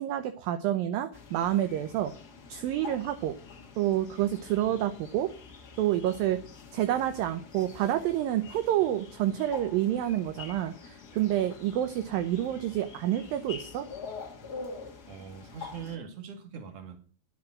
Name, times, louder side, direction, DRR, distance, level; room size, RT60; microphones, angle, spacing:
voice 1, 0.0-2.1 2.5-3.4 3.8-5.3 5.8-6.4 6.7-13.9, right 12 dB, 75° right, 9 dB, 2.2 m, -28 dB
sound 1, 1.1-16.0, left 4 dB, 65° left, 0.9 m, -46 dB
voice 2, 15.1-17.0, right 7 dB, 40° right, 5 dB, 2.7 m, -42 dB
11.0 x 7.7 x 7.6 m, 0.39 s
omnidirectional pair, 4.8 m